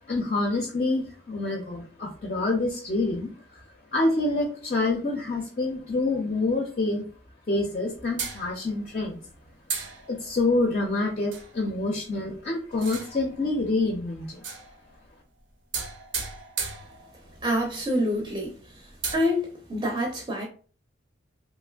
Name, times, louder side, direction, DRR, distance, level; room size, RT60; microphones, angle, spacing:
voice 1, 0.1-3.6 3.9-7.1 7.5-9.3 10.1-14.4, left 2 dB, 35° left, 0.4 m, -27 dB
sound 1, 8.2-9.0 9.7-10.5 11.3-11.6 12.7-13.4 14.3-15.0 15.7-17.4 17.9-18.0 18.3-18.4 18.9-19.2, right 5 dB, 70° right, 0.6 m, -35 dB
voice 2, 17.4-18.5 19.1-20.4, equal, 20° right, 0.5 m, -26 dB
3.1 x 2.5 x 2.3 m
head